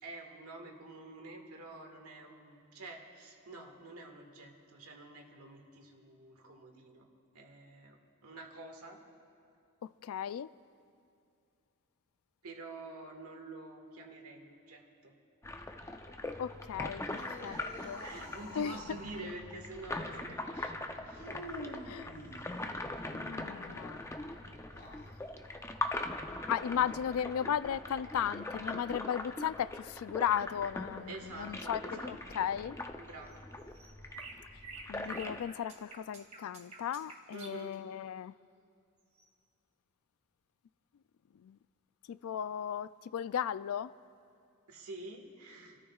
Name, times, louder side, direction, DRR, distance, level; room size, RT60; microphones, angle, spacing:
voice 1, 0.0-7.1 7.3-9.0 12.4-15.1 17.4-21.3 31.1-32.4 33.0-33.4 37.3-37.8 44.7-45.8, right 2 dB, 80° right, 2 dB, 1.8 m, -48 dB
voice 2, 10.0-10.5 16.4-17.6 17.8-18.0 18.6-19.0 21.9-22.1 23.1-24.0 26.5-31.8 32.1-32.8 34.9-38.3 41.4-41.6 42.1-43.9, left 9 dB, 70° left, 16 dB, 0.3 m, -35 dB
sound 1, 15.4-35.4, left 2 dB, 15° left, 0.6 m, -42 dB
sound 2, 17.0-19.3 21.2-23.0 24.6-25.1, equal, 45° left, 3.4 m, -48 dB
sound 3, 33.3-37.7 39.2-39.3, right 4 dB, 30° right, 1.5 m, -49 dB
30.0 x 13.5 x 2.4 m, 2.5 s
head